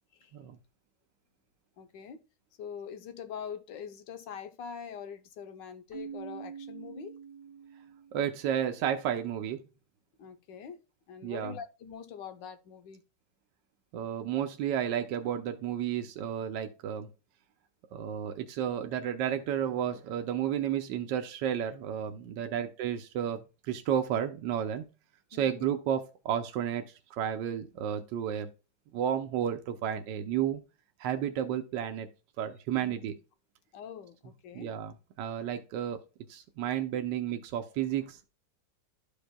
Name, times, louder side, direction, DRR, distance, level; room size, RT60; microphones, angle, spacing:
voice 1, 1.8-2.2 2.6-7.2 10.2-13.0 22.5-22.7 25.3-25.7 32.8-32.9 33.7-34.7 37.7-37.8, left 7 dB, 85° left, 1.5 m, -44 dB
Keyboard (musical), 5.9-8.6, right 7 dB, 15° left, 1.5 m, -45 dB
voice 2, 8.1-9.6 11.2-11.6 13.9-17.1 17.9-24.8 25.3-28.5 28.9-30.6 31.0-32.1 32.4-33.1 34.5-36.0 36.3-38.2, right 9 dB, 80° right, 1.3 m, -32 dB
12.5 x 5.2 x 2.2 m
omnidirectional pair, 1.9 m